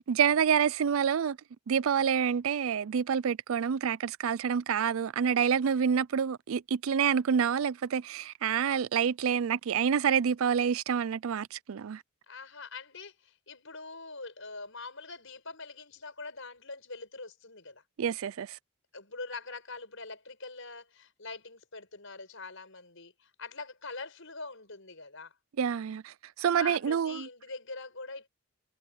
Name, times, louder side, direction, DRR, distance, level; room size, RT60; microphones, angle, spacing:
voice 1, 0.1-1.4 1.7-12.0 18.0-18.6 25.6-27.3, right 7 dB, 65° right, 0.4 m, -27 dB
voice 2, 12.3-17.8 18.9-25.3 26.6-28.3, left 3 dB, 60° left, 7.3 m, -44 dB
head